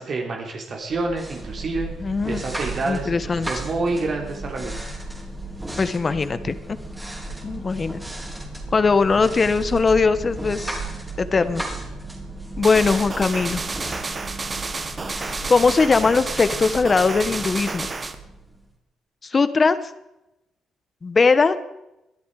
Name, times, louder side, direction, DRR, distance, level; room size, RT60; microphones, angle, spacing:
voice 1, 0.0-1.9 2.3-4.9, right 3 dB, 50° right, 1 dB, 3.4 m, -28 dB
sound 1, 0.9-18.7, right 2 dB, 10° right, 4.1 m, -34 dB
voice 2, 2.0-2.4 2.8-3.5 5.8-6.8 7.4-8.0 8.7-10.8 11.2-11.6 12.6-13.6 15.5-17.9 19.2-19.8 21.0-21.6, left 4 dB, 35° left, 13 dB, 1.3 m, -20 dB
sound 2, 12.6-18.2, right 3 dB, 30° right, 1.6 m, -30 dB
21.5 x 12.5 x 4.9 m, 0.91 s
cardioid pair, 90°, 0 cm